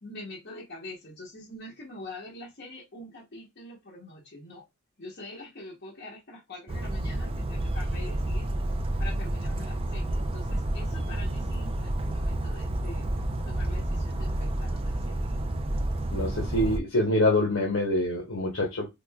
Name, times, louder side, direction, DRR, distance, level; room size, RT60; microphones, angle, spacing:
voice 1, 0.0-4.6 5.0-8.5 9.0-13.1 13.5-15.2, left 2 dB, 55° left, 1.0 m, -44 dB
Bird vocalization bird call bird song, 6.7-16.8, right 1 dB, 30° right, 0.4 m, -30 dB
voice 2, 16.1-18.9, left 1 dB, 75° left, 0.9 m, -25 dB
5.0 x 2.2 x 2.3 m
head